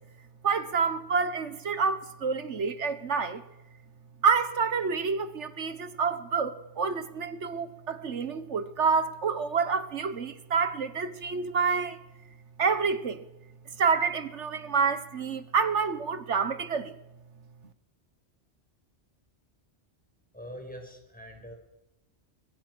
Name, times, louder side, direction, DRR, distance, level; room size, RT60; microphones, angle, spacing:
voice 1, 0.4-3.4 4.2-12.0 12.6-13.2 13.8-16.9, right 5 dB, 85° right, 1.7 m, -28 dB
voice 2, 20.3-21.5, equal, 5° left, 5.5 m, -43 dB
25.5 x 21.5 x 6.3 m
omnidirectional pair, 1.2 m